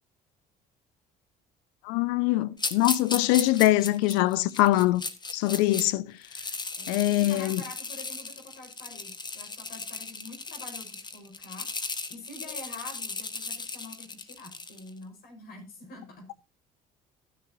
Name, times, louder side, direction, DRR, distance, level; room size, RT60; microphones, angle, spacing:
voice 1, 1.8-5.0 5.3-6.1 6.9-7.6, left 16 dB, 85° left, 0.5 m, -23 dB
sound 1, 2.6-5.9 6.2-14.9, left 4 dB, 25° left, 1.3 m, -36 dB
voice 2, 6.8-11.7 12.1-16.3, left 2 dB, 70° left, 5.4 m, -46 dB
14.0 x 10.0 x 2.7 m
supercardioid pair, 75°, 16 cm